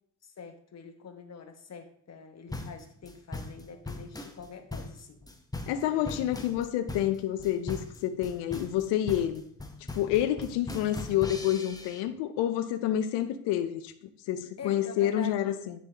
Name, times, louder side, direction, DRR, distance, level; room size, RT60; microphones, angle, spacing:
voice 1, 0.2-5.2 5.9-6.2 14.6-15.5, left 6 dB, 35° left, 1.3 m, -45 dB
sound 1, 2.5-12.0, left 2 dB, 10° left, 1.0 m, -40 dB
voice 2, 5.7-9.4 9.9-13.9 14.3-15.7, left 11 dB, 65° left, 0.7 m, -28 dB
10.0 x 3.5 x 3.3 m
hypercardioid pair, 50°, 45 cm